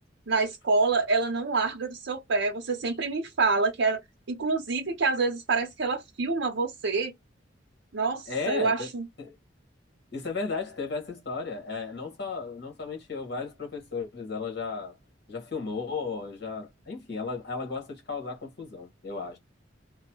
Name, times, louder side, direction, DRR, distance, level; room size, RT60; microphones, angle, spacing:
voice 1, 0.3-4.0 4.3-7.1 7.9-9.1, right 3 dB, 65° right, 0.6 m, -27 dB
voice 2, 8.3-8.9 9.2-9.3 10.1-15.0 15.3-19.4, left 4 dB, 60° left, 1.4 m, -34 dB
2.9 x 2.1 x 2.9 m
head